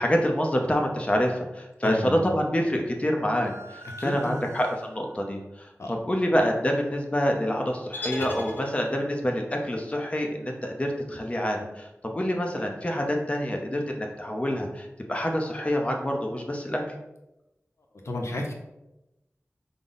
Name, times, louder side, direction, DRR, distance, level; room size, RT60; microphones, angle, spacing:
voice 1, 0.0-16.8, equal, 25° left, 1 dB, 0.6 m, -27 dB
voice 2, 1.8-2.3 4.0-4.4 5.8-5.9 18.0-18.5, left 1 dB, 70° left, 1 dB, 0.6 m, -31 dB
sound 1, 3.4-5.3, equal, 70° right, 0.4 m, -44 dB
sound 2, 7.9-9.2, left 2 dB, 50° left, 0.9 m, -35 dB
5.1 x 2.0 x 3.9 m, 0.93 s
wide cardioid pair, 65°, 5 cm